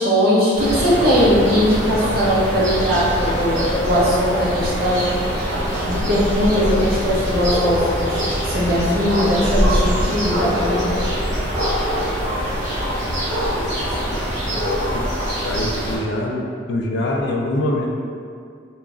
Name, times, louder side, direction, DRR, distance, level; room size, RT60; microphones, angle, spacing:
voice 1, 0.0-5.1 5.9-8.2 8.4-11.0, equal, 50° right, -7 dB, 0.6 m, -19 dB
sound 1, 0.5-16.0, equal, 35° right, 1.0 m, -23 dB
voice 2, 15.4-17.9, left 1 dB, 65° left, 0 dB, 0.3 m, -23 dB
2.4 x 2.0 x 3.6 m, 2.2 s
head